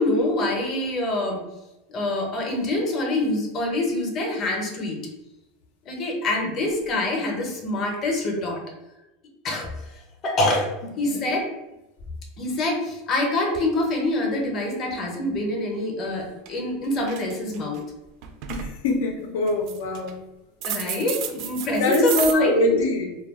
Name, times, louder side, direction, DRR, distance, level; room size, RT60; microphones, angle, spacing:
voice 1, 0.0-1.4 1.9-5.0 5.9-8.6 9.4-9.7 10.2-11.5 12.4-17.8 20.6-22.8, left 1 dB, 30° left, 1 dB, 0.6 m, -25 dB
sound 1, 16.0-16.1 16.5-16.7 17.0-17.8 18.2-18.7 19.5-20.1 20.6-22.3, right 9 dB, 50° right, 0.3 m, -30 dB
voice 2, 18.5-20.2 21.8-23.2, left 2 dB, 85° left, 3 dB, 0.5 m, -24 dB
2.2 x 2.2 x 3.5 m, 0.96 s
supercardioid pair, 155°, 0 cm